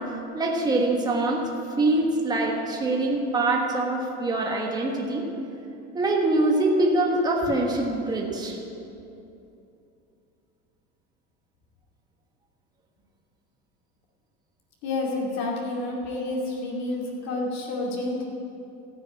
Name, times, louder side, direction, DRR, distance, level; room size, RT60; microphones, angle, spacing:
voice 1, 0.0-1.5 1.8-5.2 5.9-8.6, right 2 dB, 10° right, -1 dB, 1.4 m, -24 dB
voice 2, 14.8-18.3, left 2 dB, 55° left, -2 dB, 2.5 m, -29 dB
14.5 x 6.3 x 8.6 m, 2.7 s
supercardioid pair, 145°, 32 cm